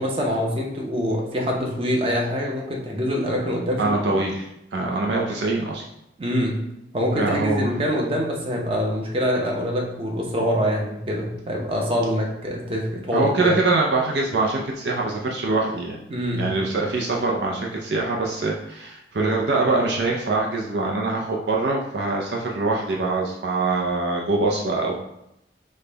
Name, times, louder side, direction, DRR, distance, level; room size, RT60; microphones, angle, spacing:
voice 1, 0.0-4.2 6.2-6.6 6.9-13.5 16.1-16.4, equal, 30° right, -1 dB, 0.8 m, -25 dB
voice 2, 3.8-5.8 7.1-7.7 13.1-16.0 16.4-25.0, right 3 dB, 60° right, -1 dB, 0.5 m, -23 dB
5.2 x 2.2 x 3.9 m, 0.83 s
head